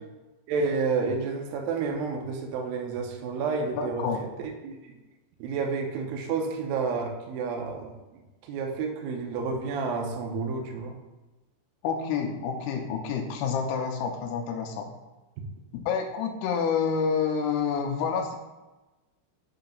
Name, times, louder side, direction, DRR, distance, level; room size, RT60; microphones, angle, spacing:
voice 1, 0.5-4.1 4.4-5.0 5.4-7.9 8.5-11.0, right 4 dB, 80° right, 1 dB, 2.1 m, -30 dB
voice 2, 3.8-4.2 11.8-14.9 15.9-18.4, left 6 dB, 85° left, 1 dB, 2.4 m, -28 dB
7.7 x 2.8 x 5.2 m, 1.1 s
omnidirectional pair, 4.9 m